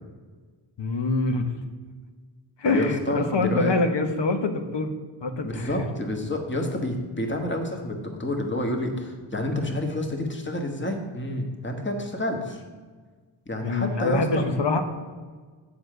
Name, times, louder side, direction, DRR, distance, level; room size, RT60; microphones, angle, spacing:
voice 1, 0.8-1.5 2.6-4.9 5.2-5.8 13.6-14.8, left 3 dB, 60° left, 6 dB, 1.1 m, -25 dB
voice 2, 2.6-3.8 5.4-12.6 13.5-14.4, left 1 dB, 25° left, 3 dB, 1.5 m, -29 dB
7.1 x 4.9 x 6.6 m, 1.5 s
cardioid pair, 45°, 47 cm